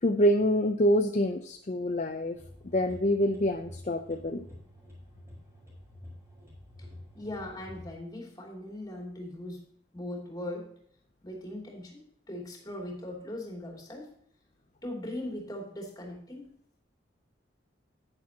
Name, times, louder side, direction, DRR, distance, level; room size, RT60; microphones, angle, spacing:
voice 1, 0.0-2.4 2.7-4.4, equal, 40° left, 6 dB, 0.6 m, -26 dB
sound 1, 2.3-7.9, left 1 dB, 15° right, 4.7 m, -49 dB
voice 2, 7.1-10.7 11.2-14.1 14.8-16.5, left 1 dB, 20° left, -1 dB, 2.9 m, -40 dB
10.5 x 9.9 x 2.9 m, 0.65 s
head